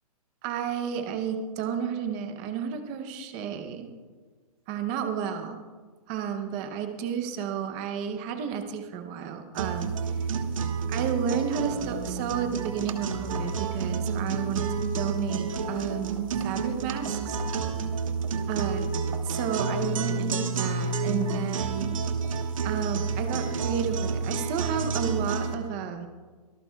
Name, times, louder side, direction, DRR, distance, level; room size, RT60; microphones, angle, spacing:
voice 1, 0.4-3.9 4.7-5.6 6.1-9.9 10.9-14.7 14.9-17.4 18.5-18.9 19.2-22.0 22.6-26.1, right 7 dB, 15° right, 7 dB, 0.6 m, -32 dB
sound 1, 9.5-25.5, right 5 dB, 60° right, 1.2 m, -30 dB
24.5 x 13.5 x 2.3 m, 1.4 s
hypercardioid pair, 175°, 20 cm